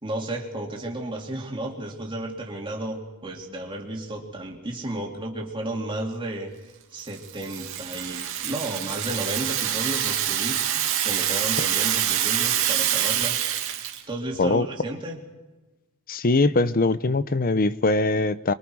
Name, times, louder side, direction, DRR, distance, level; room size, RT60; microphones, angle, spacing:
voice 1, 0.0-6.5 6.9-13.4 14.1-15.2, right 1 dB, 25° right, -1 dB, 3.0 m, -33 dB
Rattle (instrument), 7.1-14.0, right 11 dB, 65° right, 2.3 m, -26 dB
voice 2, 16.1-18.5, left 3 dB, 40° left, 15 dB, 0.7 m, -22 dB
26.5 x 23.0 x 4.8 m, 1.2 s
head